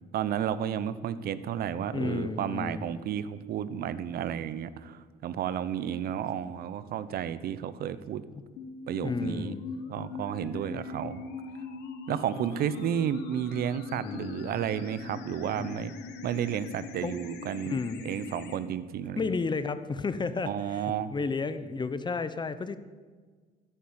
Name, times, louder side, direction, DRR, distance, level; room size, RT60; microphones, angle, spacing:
voice 1, 0.1-8.2 8.9-9.5 9.9-11.2 12.1-15.9 16.2-19.3 20.5-21.1, right 9 dB, 65° right, 15 dB, 0.9 m, -32 dB
voice 2, 1.9-2.9 8.3-8.4 9.0-9.6 14.0-14.6 15.6-15.9 17.0-17.2 17.7-18.0 19.2-20.8 21.1-22.8, left 4 dB, 25° left, 13 dB, 0.9 m, -32 dB
sound 1, 8.6-18.6, left 4 dB, 85° left, 1.8 m, -41 dB
14.5 x 9.2 x 8.9 m, 1.5 s
cardioid pair, 110°, 17 cm